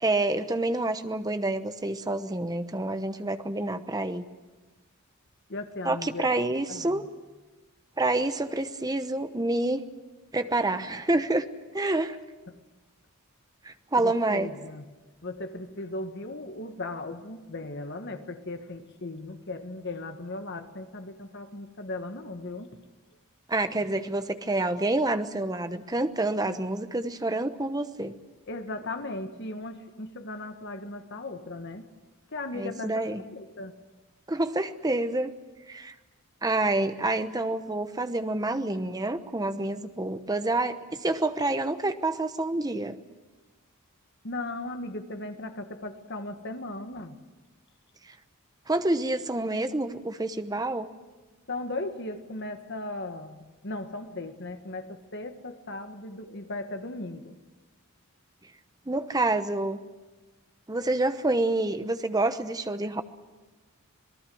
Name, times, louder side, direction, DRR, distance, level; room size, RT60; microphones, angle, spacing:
voice 1, 0.0-4.2 5.8-7.0 8.0-9.8 10.3-11.4 11.7-12.2 13.6-14.5 23.5-28.1 32.5-33.2 34.3-35.3 35.7-35.9 36.4-43.0 48.7-50.9 58.9-59.8 60.7-63.0, right 2 dB, 15° right, 9 dB, 1.0 m, -28 dB
voice 2, 5.5-6.3 6.7-7.1 12.5-12.6 14.0-14.9 15.2-22.8 28.5-31.9 32.3-33.7 44.2-47.2 51.5-57.3, left 2 dB, 50° left, 7 dB, 1.6 m, -37 dB
27.0 x 19.5 x 7.8 m, 1.3 s
head